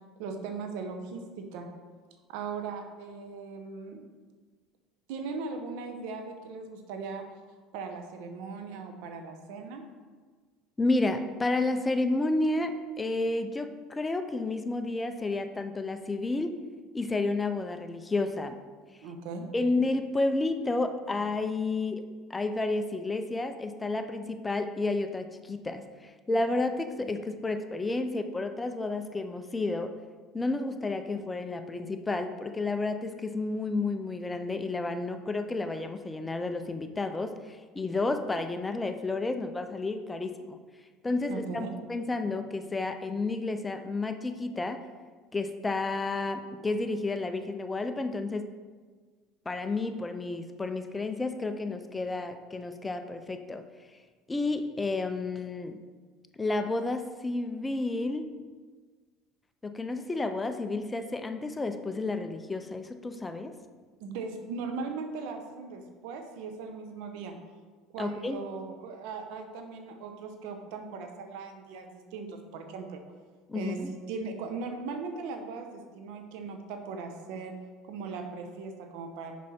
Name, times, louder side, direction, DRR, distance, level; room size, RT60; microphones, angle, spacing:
voice 1, 0.2-1.7 2.3-4.0 5.1-7.2 7.7-9.9 19.0-19.5 41.3-41.8 64.0-67.3 67.9-73.0 73.5-77.5 77.8-79.3, right 4 dB, 75° right, 5 dB, 0.8 m, -38 dB
voice 2, 10.8-16.5 16.9-18.6 19.5-29.9 30.3-40.6 41.0-44.8 45.3-48.5 49.5-53.6 54.3-55.8 56.4-58.3 59.6-63.5 68.0-68.4 73.5-73.9, left 2 dB, 15° left, 8 dB, 0.5 m, -31 dB
6.2 x 5.5 x 4.3 m, 1.5 s
supercardioid pair, 105°, 0 cm